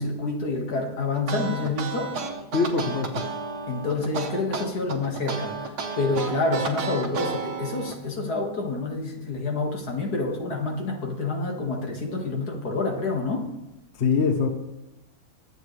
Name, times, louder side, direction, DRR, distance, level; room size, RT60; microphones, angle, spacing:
voice 1, 0.0-2.1 3.7-13.5, left 3 dB, 65° left, 1 dB, 2.3 m, -28 dB
sound 1, 1.1-7.9, right 4 dB, 80° right, 1.9 m, -32 dB
voice 2, 2.5-3.2 14.0-14.5, left 5 dB, 45° left, 5 dB, 1.1 m, -23 dB
22.0 x 7.9 x 3.3 m, 0.96 s
omnidirectional pair, 1.8 m